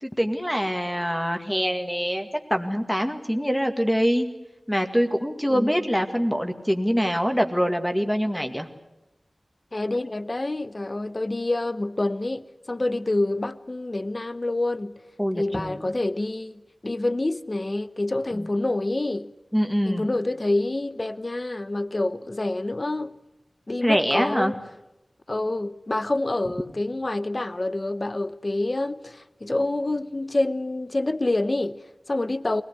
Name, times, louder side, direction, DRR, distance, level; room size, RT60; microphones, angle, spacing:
voice 1, 0.0-4.3 4.7-8.7 15.2-15.8 18.3-18.5 19.5-20.1 23.8-24.5, equal, 5° left, 2.1 m, -24 dB
voice 2, 9.7-15.0 15.4-19.3 19.9-23.2 23.7-24.6 25.3-32.6, left 2 dB, 45° left, 0.9 m, -27 dB
23.5 x 18.5 x 9.7 m
wide cardioid pair, 65°, 0 cm